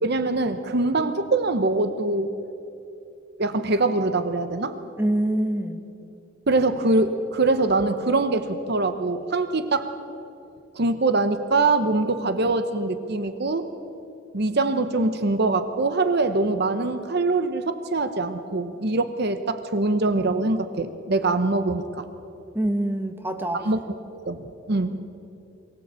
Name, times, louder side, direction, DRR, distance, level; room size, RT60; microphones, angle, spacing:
voice 1, 0.0-2.3 3.4-4.7 6.5-9.9 10.7-13.7 14.3-22.1 23.5-23.8 24.3-25.0, right 3 dB, 55° right, 10 dB, 0.9 m, -23 dB
voice 2, 5.0-5.8 22.5-23.6, right 1 dB, 10° right, 5 dB, 1.4 m, -25 dB
23.0 x 18.0 x 8.3 m, 2.8 s
head